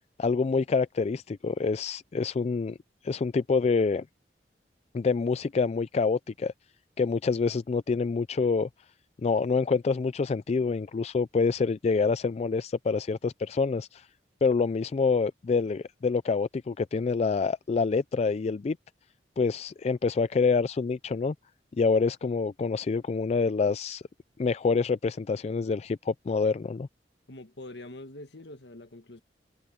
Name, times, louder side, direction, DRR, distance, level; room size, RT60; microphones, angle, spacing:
voice 1, 0.2-2.8 3.0-4.0 4.9-6.5 7.0-8.7 9.2-14.1 14.4-18.8 19.4-21.3 21.8-24.0 24.4-26.9, left 4 dB, 35° left, 0.3 m, -26 dB
voice 2, 27.3-29.2, left 2 dB, 70° left, 1.8 m, -44 dB
head